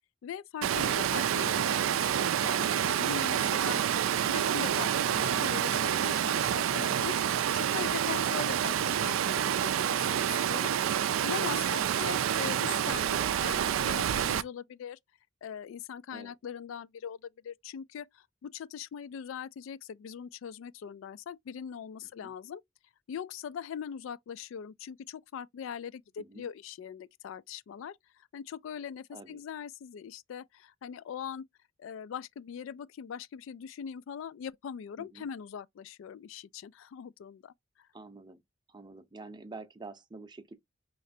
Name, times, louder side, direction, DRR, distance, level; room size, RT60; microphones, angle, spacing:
voice 1, 0.2-3.8 4.3-7.1 7.5-10.7 11.2-15.0 15.4-22.6 23.1-31.4 31.8-37.9, left 8 dB, 70° left, 0.3 m, -41 dB
Water, 0.6-14.4, right 9 dB, 85° right, 0.4 m, -28 dB
voice 2, 29.1-29.4 35.0-35.3 37.9-38.4 38.7-40.5, right 3 dB, 20° right, 0.6 m, -48 dB
4.8 x 3.2 x 2.6 m
head